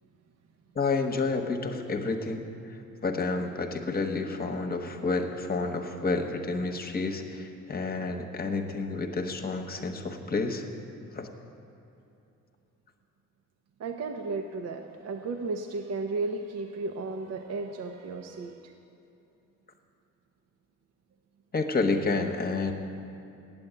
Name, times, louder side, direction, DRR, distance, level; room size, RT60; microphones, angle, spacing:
voice 1, 0.7-2.5 3.0-10.6 11.1-11.3 21.5-22.7, left 3 dB, 30° left, 4 dB, 1.1 m, -29 dB
voice 2, 13.8-18.7, right 3 dB, 60° right, 4 dB, 0.8 m, -34 dB
8.8 x 7.8 x 8.8 m, 2.8 s
cardioid pair, 90°, 30 cm